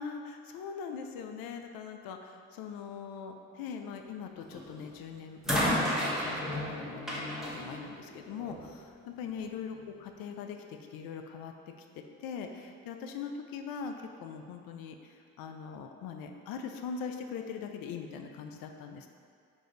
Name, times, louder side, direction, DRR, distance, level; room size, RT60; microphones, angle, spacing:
voice 1, 0.0-11.5 11.9-13.9 14.2-19.1, left 6 dB, 70° left, 5 dB, 0.5 m, -41 dB
sound 1, 4.5-4.9 5.4-8.7 9.7-9.8, left 1 dB, ahead, 1.2 m, -32 dB
4.8 x 2.6 x 3.8 m, 2.3 s
supercardioid pair, 55°, 37 cm